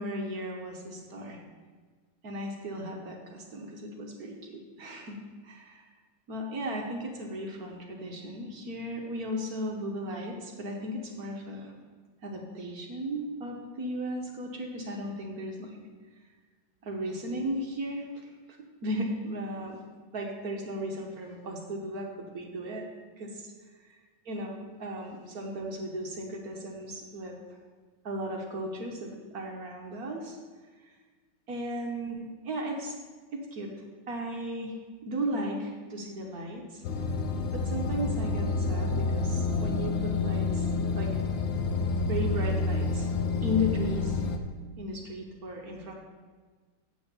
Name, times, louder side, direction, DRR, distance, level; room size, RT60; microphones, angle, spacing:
voice 1, 0.0-1.4 2.2-5.2 5.4-5.8 6.3-11.7 12.2-15.8 16.8-18.3 18.8-19.8 20.1-22.9 23.2-23.5 23.8-24.0 24.2-27.6 28.0-30.4 30.8-31.0 31.5-33.0 33.3-33.7 34.1-36.8 37.5-41.1 42.0-43.1 43.4-44.3 44.8-45.9, equal, 55° right, 1 dB, 1.3 m, -36 dB
sound 1, 36.8-44.4, left 3 dB, 70° left, 1.4 m, -29 dB
8.0 x 6.3 x 6.9 m, 1.4 s
omnidirectional pair, 2.3 m